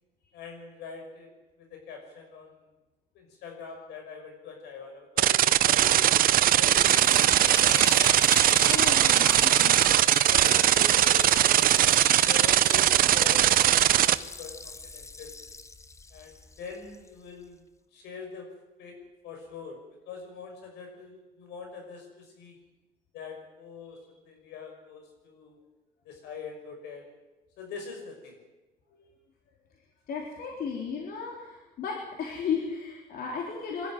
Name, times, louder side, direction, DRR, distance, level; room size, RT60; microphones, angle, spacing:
voice 1, 0.3-1.3 1.6-2.6 3.1-6.2 6.6-8.9 9.9-11.7 12.2-15.4 16.1-17.6 17.9-18.5 18.8-19.0 19.2-22.6 23.1-25.6 26.0-27.1 27.6-28.4, left 5 dB, 85° left, 3 dB, 6.4 m, -43 dB
sound 1, 5.2-14.1, right 12 dB, 60° right, 0.7 m, -20 dB
Liquid, 6.8-17.0, left 3 dB, 15° left, 0.8 m, -38 dB
voice 2, 8.6-9.8 23.8-24.0 28.9-29.1 30.1-33.9, left 6 dB, 65° left, -1 dB, 3.9 m, -35 dB
22.5 x 13.5 x 9.5 m, 1.1 s
cardioid pair, 110°, 17 cm